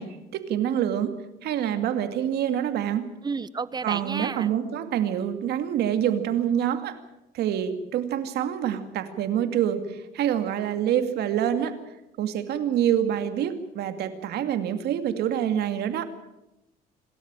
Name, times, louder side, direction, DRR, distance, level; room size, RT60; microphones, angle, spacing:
voice 1, 0.0-3.1 3.8-7.0 7.3-11.8 12.2-16.1, right 10 dB, 75° right, 9 dB, 2.4 m, -26 dB
voice 2, 3.2-4.5, right 5 dB, 25° right, 17 dB, 1.0 m, -31 dB
27.0 x 13.0 x 8.9 m, 0.96 s
cardioid pair, 110°, 17 cm